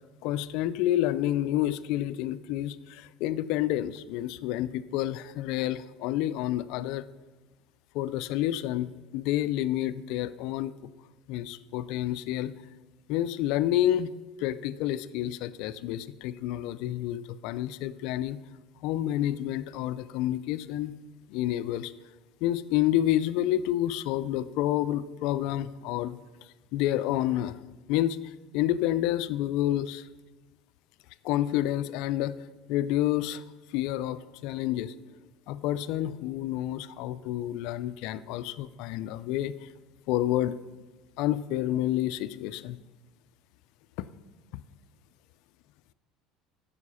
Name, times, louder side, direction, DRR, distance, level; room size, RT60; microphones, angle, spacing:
voice 1, 0.2-7.1 7.9-10.9 11.3-12.5 13.1-14.1 14.4-18.4 18.8-20.9 21.3-21.9 22.4-26.2 26.7-27.6 27.9-30.1 31.2-32.3 32.7-33.4 33.7-34.9 35.5-39.7 40.1-40.6 41.2-42.8, left 13 dB, 70° left, 15 dB, 0.4 m, -29 dB
9.6 x 7.0 x 5.6 m, 1.2 s
supercardioid pair, 110°, 0 cm